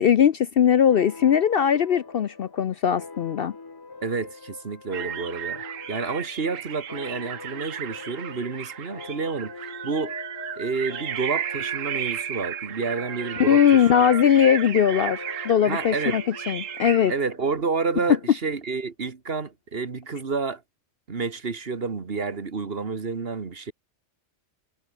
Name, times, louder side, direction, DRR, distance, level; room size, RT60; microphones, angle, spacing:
voice 1, 0.0-3.5 13.4-17.1, left 8 dB, 60° left, 0.7 m, -20 dB
sound 1, 0.9-18.0, left 3 dB, 20° left, 0.7 m, -42 dB
voice 2, 4.0-5.6 5.9-10.1 10.6-13.9 15.7-16.2 17.1-20.6 21.1-23.7, right 4 dB, 50° right, 1.8 m, -29 dB
sound 2, 4.9-17.1, right 9 dB, 90° right, 1.3 m, -34 dB
omnidirectional pair, 1.3 m